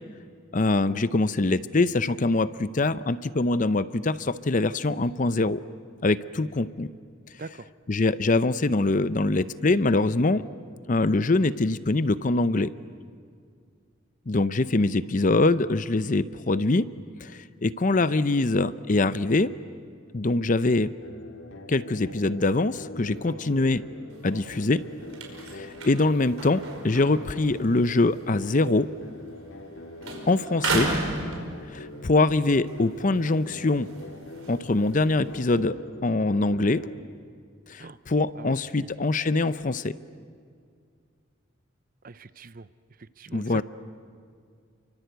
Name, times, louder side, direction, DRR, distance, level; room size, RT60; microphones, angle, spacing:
voice 1, 0.5-5.6 6.0-6.9 7.9-10.4 10.9-12.7 14.3-16.9 17.2-19.5 20.1-20.9 21.7-23.8 24.2-24.8 25.5-28.9 30.3-30.9 31.7-33.9 34.5-35.8 36.0-36.8 37.7-39.9 43.3-43.6, left 2 dB, 40° left, 14 dB, 0.6 m, -23 dB
voice 2, 7.4-7.7 23.1-23.4 37.8-38.0 38.3-38.6 42.0-42.7 43.0-43.6, right 3 dB, 40° right, 14 dB, 0.6 m, -42 dB
sound 1, 21.0-37.0, left 1 dB, 65° left, 2.1 m, -43 dB
sound 2, 24.1-29.7 30.0-32.0 32.5-35.6, right 3 dB, 85° right, 5.2 m, -35 dB
30.0 x 24.0 x 8.1 m, 2.2 s
head